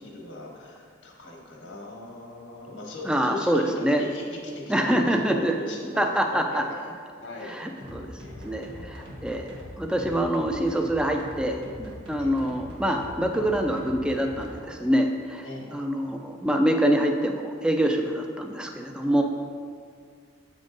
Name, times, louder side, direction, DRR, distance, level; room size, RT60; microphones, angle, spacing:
voice 1, 0.0-6.0 6.3-6.9 7.2-7.6 8.2-9.0 12.2-12.5 15.4-15.8, left 2 dB, 80° left, -1 dB, 1.2 m, -39 dB
voice 2, 3.1-4.0 4.7-5.5 6.0-6.6 7.5-8.1 8.4-8.7 9.2-9.5 9.8-15.4 15.7-19.2, equal, 5° right, 3 dB, 0.4 m, -25 dB
sound 1, 7.8-14.6, equal, 85° right, 1.3 m, -42 dB
8.0 x 3.6 x 3.9 m, 2.1 s
head